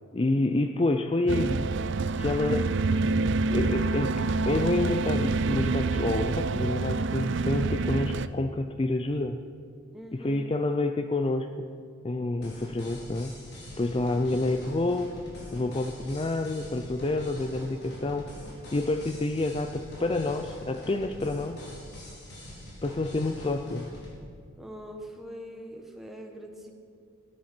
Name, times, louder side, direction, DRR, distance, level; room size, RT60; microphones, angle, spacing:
voice 1, 0.1-1.7 2.2-2.7 3.5-9.4 10.1-11.7 12.0-13.4 13.8-15.2 15.5-18.3 18.7-21.6 22.8-23.9, left 2 dB, 25° left, 7 dB, 0.4 m, -28 dB
sound 1, 1.3-8.3, right 3 dB, 60° right, 0.4 m, -27 dB
voice 2, 9.9-10.5 24.6-26.7, equal, ahead, 2 dB, 1.3 m, -42 dB
sound 2, 12.4-24.1, equal, 50° left, 4.3 m, -44 dB
16.0 x 10.5 x 6.1 m, 2.2 s
head